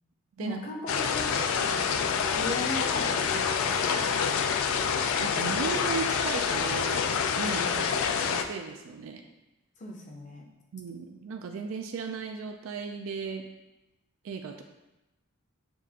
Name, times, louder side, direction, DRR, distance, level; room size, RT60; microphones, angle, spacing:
voice 1, 0.4-4.6 7.4-7.8 9.8-10.4, left 1 dB, 35° left, 0 dB, 0.6 m, -38 dB
sound 1, 0.9-8.4, left 6 dB, 75° left, 0.3 m, -27 dB
voice 2, 5.2-7.0 7.4-7.6 8.2-9.2 10.7-13.5 14.2-14.6, right 5 dB, 70° right, 4 dB, 0.3 m, -36 dB
6.9 x 2.4 x 2.8 m, 1.0 s
head